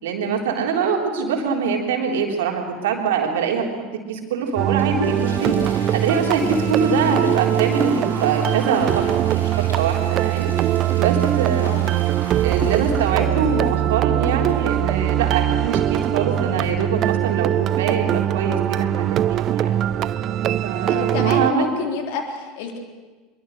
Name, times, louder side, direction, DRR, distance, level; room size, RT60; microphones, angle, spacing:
voice 1, 0.0-5.6 5.9-10.5 11.0-11.9 12.4-19.7 20.6-21.7, right 5 dB, 65° right, 1 dB, 3.6 m, -24 dB
Toilet flush, 4.4-16.4 18.2-18.3 18.7-18.8 19.6-19.7 20.3-20.6 21.0-21.1, left 1 dB, 85° left, 3.4 m, -36 dB
sound 1, 4.6-21.5, right 12 dB, 40° right, 0.6 m, -21 dB
voice 2, 20.9-22.8, left 5 dB, 60° left, 3 dB, 3.6 m, -28 dB
24.5 x 22.5 x 6.5 m, 1.3 s
figure-of-eight pair, 75°, 0 cm